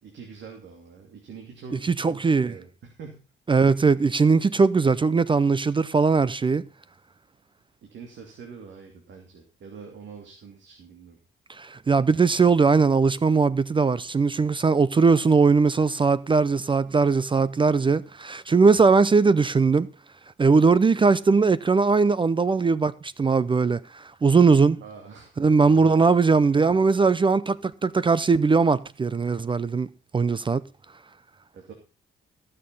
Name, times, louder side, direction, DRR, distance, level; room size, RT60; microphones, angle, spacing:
voice 1, 0.0-3.2 7.8-11.2 24.8-26.2 31.5-31.7, right 5 dB, 65° right, 2.8 m, -44 dB
voice 2, 1.8-2.5 3.5-6.6 11.5-19.9 20.4-24.8 25.4-29.9 30.1-30.6, right 4 dB, 25° right, 0.5 m, -20 dB
15.0 x 6.7 x 5.4 m
cardioid pair, 90°, 20 cm